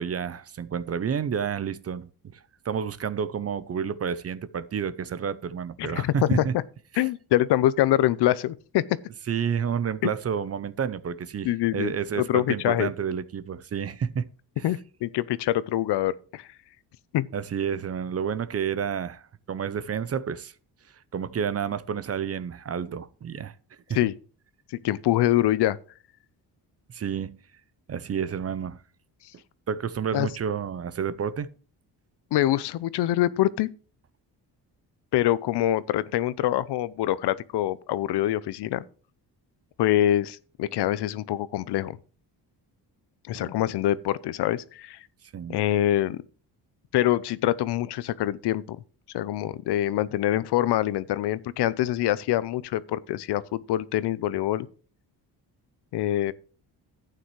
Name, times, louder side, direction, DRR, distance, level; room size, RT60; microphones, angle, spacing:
voice 1, 0.0-6.6 6.9-7.1 9.3-14.3 14.6-14.7 17.3-20.5 21.1-23.5 26.9-27.4 27.9-28.8 29.7-31.5 43.4-43.5 45.3-45.6, right 7 dB, 35° right, 0.6 m, -30 dB
voice 2, 5.8-6.4 7.0-8.8 10.0-10.1 11.4-12.9 14.6-16.5 17.1-17.3 23.9-24.1 24.8-25.8 30.1-30.3 32.3-33.7 35.1-38.8 39.8-42.0 43.3-45.0 45.5-46.2 46.9-48.8 49.1-54.7 55.9-56.3, left 13 dB, 75° left, 0.7 m, -25 dB
11.5 x 9.1 x 3.2 m
cardioid pair, 110°, 41 cm